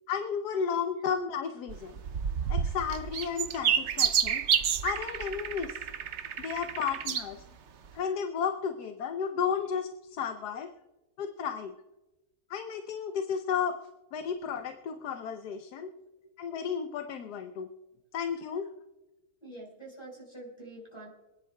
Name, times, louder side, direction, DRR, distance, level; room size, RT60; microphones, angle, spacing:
voice 1, 0.1-2.0 2.4-4.4 4.8-5.8 6.4-7.5 7.9-10.7 11.2-11.7 12.5-13.8 14.1-15.9 16.4-17.7 18.1-18.7, left 7 dB, 80° left, 6 dB, 1.3 m, -33 dB
sound 1, 1.7-7.3 7.9-8.0, right 7 dB, 55° right, 0.8 m, -29 dB
voice 2, 19.4-21.1, right 2 dB, 15° left, -2 dB, 4.5 m, -45 dB
26.5 x 10.0 x 2.3 m, 1.0 s
omnidirectional pair, 1.7 m